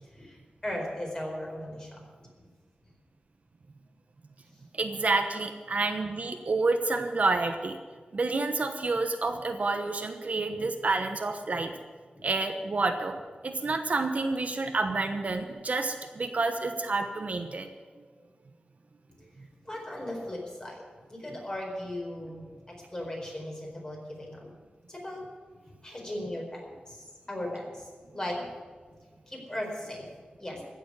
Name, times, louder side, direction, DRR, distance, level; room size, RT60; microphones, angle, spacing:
voice 1, 0.1-2.0 19.6-20.8 21.1-24.5 24.9-25.3 25.8-28.4 29.3-30.1 30.4-30.6, left 1 dB, 25° left, -1 dB, 4.5 m, -37 dB
voice 2, 4.7-7.8 8.1-11.7 12.2-13.2 13.4-17.7, right 3 dB, 55° right, 6 dB, 1.0 m, -29 dB
15.5 x 7.2 x 9.6 m, 1.5 s
wide cardioid pair, 105°, 3 cm